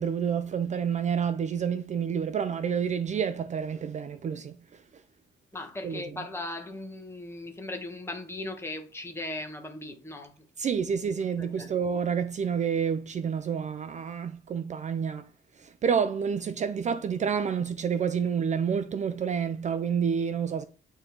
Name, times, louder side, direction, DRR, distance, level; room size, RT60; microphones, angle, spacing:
voice 1, 0.0-4.5 5.8-6.0 10.6-15.3 15.6-20.6, right 7 dB, 35° right, 0.5 m, -29 dB
voice 2, 5.5-10.4 11.4-11.8, left 2 dB, 10° left, 1.3 m, -38 dB
9.1 x 3.8 x 4.5 m
wide cardioid pair, 175°, 20 cm